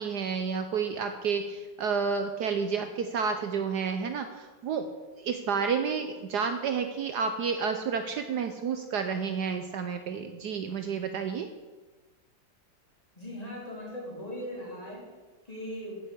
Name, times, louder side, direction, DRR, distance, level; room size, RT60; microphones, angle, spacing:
voice 1, 0.0-4.9 5.2-11.5, right 6 dB, 65° right, 7 dB, 1.2 m, -30 dB
voice 2, 13.2-15.0 15.4-16.0, equal, 20° left, -4 dB, 3.8 m, -39 dB
9.6 x 7.8 x 8.5 m, 1.3 s
omnidirectional pair, 2.0 m